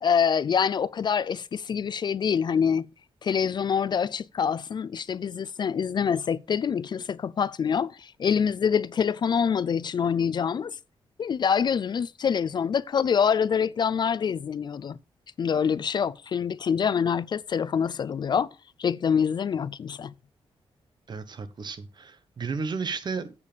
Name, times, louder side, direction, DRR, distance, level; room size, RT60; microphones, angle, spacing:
voice 1, 0.0-2.9 3.2-10.8 11.2-15.0 15.4-18.5 18.8-20.1, left 7 dB, 45° left, 0.4 m, -25 dB
voice 2, 21.1-23.3, right 5 dB, 45° right, 1.1 m, -33 dB
8.3 x 6.9 x 5.0 m
wide cardioid pair, 140°, 10 cm